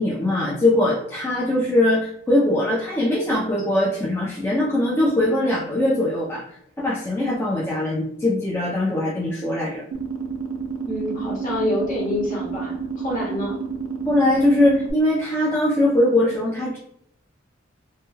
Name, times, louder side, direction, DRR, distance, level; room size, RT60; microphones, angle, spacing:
voice 1, 0.0-6.4 6.8-9.8 14.1-16.8, left 1 dB, 15° left, -6 dB, 0.4 m, -21 dB
sound 1, 9.9-14.9, right 5 dB, 75° right, 0.4 m, -30 dB
voice 2, 10.8-13.6, left 1 dB, 40° left, -4 dB, 1.0 m, -27 dB
2.2 x 2.1 x 3.1 m, 0.70 s
head